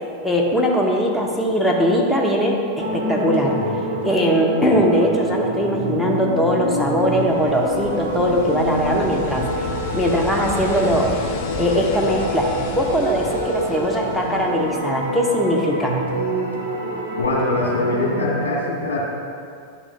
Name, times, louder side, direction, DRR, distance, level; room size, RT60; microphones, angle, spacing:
voice 1, 0.2-3.7 4.0-9.7 9.9-11.1 11.6-16.0, equal, 5° left, -1 dB, 0.9 m, -20 dB
sound 1, 2.8-18.5, equal, 70° right, 0.9 m, -26 dB
sound 2, 6.8-15.1 17.2-17.3, left 5 dB, 45° left, 0.5 m, -33 dB
voice 2, 17.2-19.0, left 2 dB, 65° left, -4 dB, 1.7 m, -22 dB
10.5 x 6.0 x 2.3 m, 2.3 s
figure-of-eight pair, 90°, 0 cm